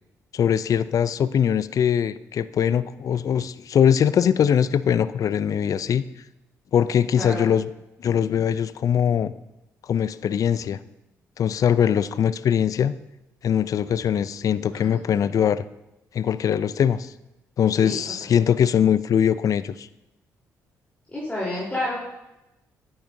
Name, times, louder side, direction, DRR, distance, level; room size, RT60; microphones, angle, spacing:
voice 1, 0.3-6.0 6.7-7.7 8.0-9.3 9.9-10.8 11.4-13.0 13.4-15.6 16.1-17.1 17.6-19.9, left 8 dB, 55° left, 16 dB, 0.4 m, -21 dB
voice 2, 7.2-7.5 14.7-14.9 17.8-18.0 21.1-22.0, left 1 dB, 15° left, -7 dB, 3.6 m, -29 dB
10.5 x 8.7 x 2.7 m, 0.93 s
supercardioid pair, 55°, 7 cm